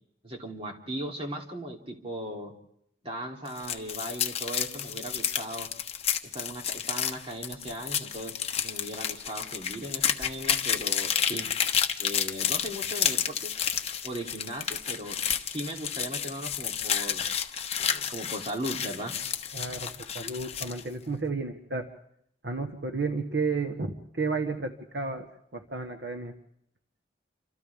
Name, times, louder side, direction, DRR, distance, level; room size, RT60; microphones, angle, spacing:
voice 1, 0.2-2.5 3.0-5.7 6.3-11.5 12.0-13.5 14.0-15.2 15.5-17.2 17.8-19.1, right 1 dB, 30° right, 1 dB, 3.2 m, -37 dB
sound 1, 3.5-20.8, left 8 dB, 35° left, 1.2 m, -30 dB
voice 2, 19.5-21.9 22.4-25.3 25.5-26.3, right 4 dB, 65° right, 5 dB, 1.4 m, -32 dB
29.0 x 26.0 x 3.6 m, 0.72 s
head